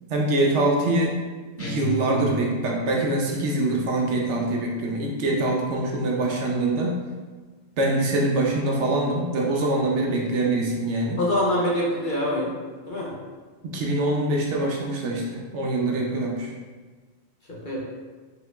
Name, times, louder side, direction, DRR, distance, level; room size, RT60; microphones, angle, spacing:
voice 1, 0.1-1.2 1.6-7.0 7.8-11.2 13.6-16.5, right 2 dB, 70° right, -1 dB, 0.9 m, -24 dB
sound 1, 1.6-3.0, right 5 dB, 20° left, 0.4 m, -33 dB
voice 2, 11.2-12.5 12.9-13.1 17.5-17.8, left 1 dB, 45° left, -5 dB, 0.8 m, -24 dB
4.6 x 3.7 x 2.3 m, 1.4 s
omnidirectional pair, 1.3 m